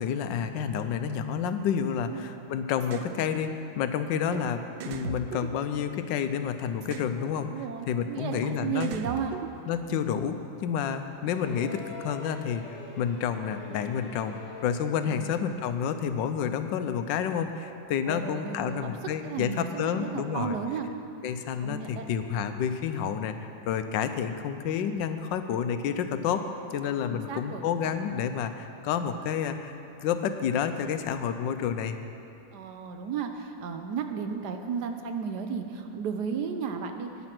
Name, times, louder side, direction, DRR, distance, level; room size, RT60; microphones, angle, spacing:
voice 1, 0.0-9.0 9.6-12.6 13.0-20.6 21.2-26.4 26.7-32.0, left 7 dB, 85° left, 9 dB, 1.3 m, -30 dB
sound 1, 2.8-3.1 4.3-4.4 4.8-6.2 6.8-7.1 8.3-8.4 8.8-9.9, right 9 dB, 90° right, 1.3 m, -39 dB
voice 2, 7.3-9.3 15.1-15.4 18.1-18.9 19.2-20.9 21.6-22.0 27.1-27.6 32.5-37.1, right 6 dB, 65° right, 6 dB, 1.3 m, -34 dB
sound 2, 11.3-14.9 16.2-16.3, left 4 dB, 65° left, 2.2 m, -43 dB
11.0 x 9.7 x 6.0 m, 2.7 s
omnidirectional pair, 2.0 m